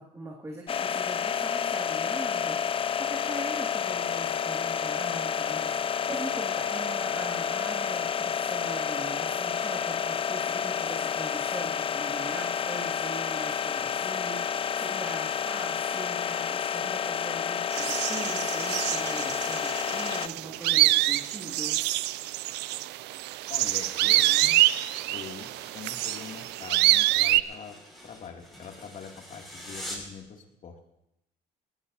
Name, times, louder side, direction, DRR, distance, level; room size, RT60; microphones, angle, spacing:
voice 1, 0.0-21.8, right 2 dB, 15° right, -3 dB, 2.4 m, -41 dB
sound 1, 0.7-20.3, left 8 dB, 35° left, 0.4 m, -30 dB
sound 2, 17.7-27.4, right 17 dB, 90° right, 0.5 m, -26 dB
sound 3, 23.4-30.2, equal, ahead, 6.0 m, -46 dB
voice 2, 23.5-24.8 25.1-27.8 28.0-30.7, left 6 dB, 50° left, 1 dB, 2.8 m, -44 dB
20.5 x 17.0 x 2.9 m, 0.83 s
cardioid pair, 110°, 17 cm